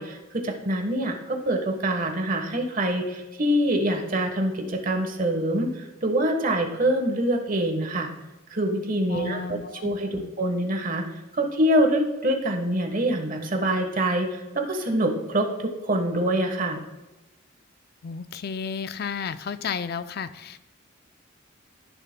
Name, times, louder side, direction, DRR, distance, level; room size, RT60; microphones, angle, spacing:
voice 1, 0.0-8.1 8.5-11.1 11.3-16.8, right 1 dB, 40° right, 4 dB, 1.2 m, -25 dB
voice 2, 9.1-10.3 18.0-20.6, left 6 dB, 50° left, 11 dB, 0.4 m, -33 dB
16.0 x 6.8 x 2.2 m, 1.1 s
head